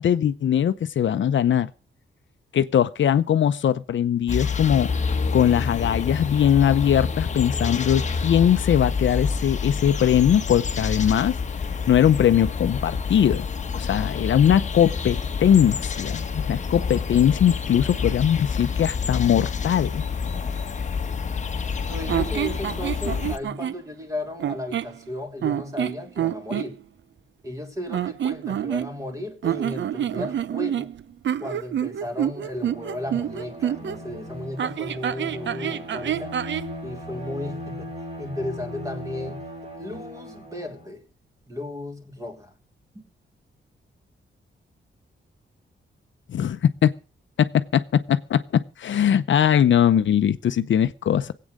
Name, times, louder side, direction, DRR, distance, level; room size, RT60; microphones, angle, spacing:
voice 1, 0.0-1.7 2.5-4.9 5.3-11.3 11.9-13.4 13.8-20.0 46.3-46.9 47.4-51.3, left 9 dB, 70° left, 0.7 m, -20 dB
sound 1, 4.3-23.4, left 5 dB, 35° left, 1.2 m, -28 dB
voice 2, 21.9-26.8 27.4-30.9 31.4-36.3 36.8-37.9 38.2-39.4 39.8-41.0 41.5-42.5 42.9-43.0, left 1 dB, 15° right, 3.1 m, -34 dB
sound 2, 22.1-23.8 24.4-25.0 25.4-26.7 27.9-29.1 29.4-34.0 34.6-36.7, right 10 dB, 65° right, 0.7 m, -27 dB
Bowed string instrument, 32.5-41.0, equal, 35° right, 3.8 m, -38 dB
19.5 x 8.6 x 6.5 m
wide cardioid pair, 180°, 20 cm